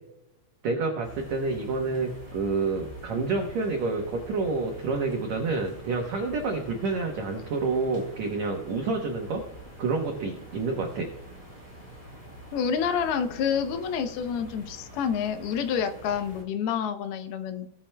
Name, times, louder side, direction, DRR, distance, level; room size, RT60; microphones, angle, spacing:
voice 1, 0.6-9.4 9.8-11.1, right 3 dB, 85° right, 2 dB, 1.5 m, -28 dB
sound 1, 1.0-16.4, equal, 15° left, 2.2 m, -46 dB
voice 2, 12.5-17.7, left 7 dB, 80° left, 8 dB, 2.6 m, -28 dB
17.5 x 8.8 x 2.2 m, 0.88 s
omnidirectional pair, 4.7 m